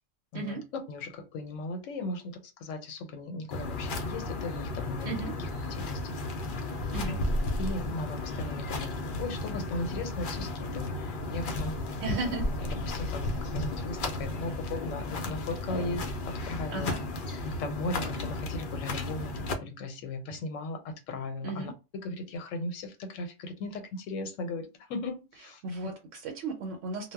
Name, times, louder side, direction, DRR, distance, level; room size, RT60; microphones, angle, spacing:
voice 1, 0.9-5.1 5.8-6.2 6.6-6.7 7.0-7.2 7.6-11.8 12.1-12.2 12.8-17.0 17.6-25.6, left 2 dB, 85° left, 1.0 m, -37 dB
sound 1, 3.5-19.5, left 2 dB, 55° left, 0.6 m, -34 dB
voice 2, 5.0-5.4 6.9-7.2 12.0-12.5 16.7-17.0 21.4-21.7 25.6-27.1, right 3 dB, 80° right, 1.0 m, -35 dB
2.2 x 2.0 x 3.4 m
omnidirectional pair, 1.3 m